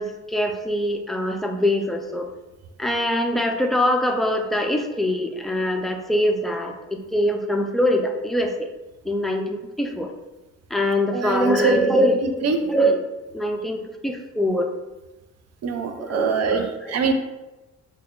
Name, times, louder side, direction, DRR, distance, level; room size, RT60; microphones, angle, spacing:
voice 1, 0.0-2.3 2.8-8.7 9.1-10.1 10.7-13.0 13.3-14.7 16.0-16.9, equal, ahead, 3 dB, 0.3 m, -23 dB
voice 2, 11.1-11.8 12.2-12.6 15.6-17.1, right 5 dB, 55° right, 6 dB, 0.5 m, -24 dB
3.3 x 2.2 x 3.6 m, 1.1 s
cardioid pair, 90°, 30 cm